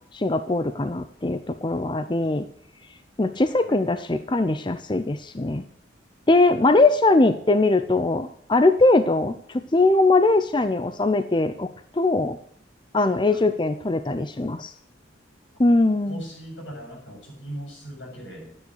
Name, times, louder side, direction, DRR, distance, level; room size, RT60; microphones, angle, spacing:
voice 1, 0.1-2.5 3.2-5.6 6.3-12.4 12.9-14.7 15.6-16.2, left 2 dB, 25° left, 10 dB, 0.6 m, -21 dB
voice 2, 6.5-6.8 13.3-13.6 16.1-18.6, right 1 dB, 85° left, 0 dB, 7.5 m, -40 dB
12.5 x 9.5 x 6.4 m, 0.63 s
head